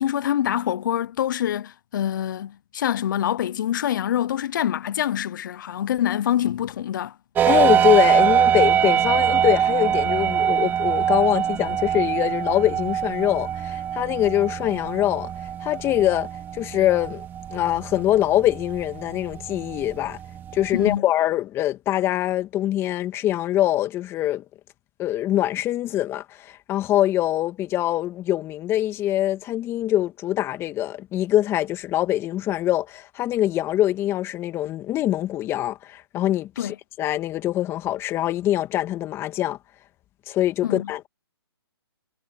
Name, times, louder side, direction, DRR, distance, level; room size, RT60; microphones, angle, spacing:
voice 1, 0.0-7.1 20.7-21.0 36.6-36.8 40.6-40.9, left 11 dB, 50° left, 0.8 m, -25 dB
sound 1, 7.4-21.0, right 9 dB, 15° right, 2.3 m, -23 dB
voice 2, 7.5-15.3 15.6-16.3 16.5-17.2 17.5-20.2 20.5-24.4 25.0-39.6 40.3-41.1, left 13 dB, 20° left, 2.0 m, -23 dB
hypercardioid pair, 145°, 14 cm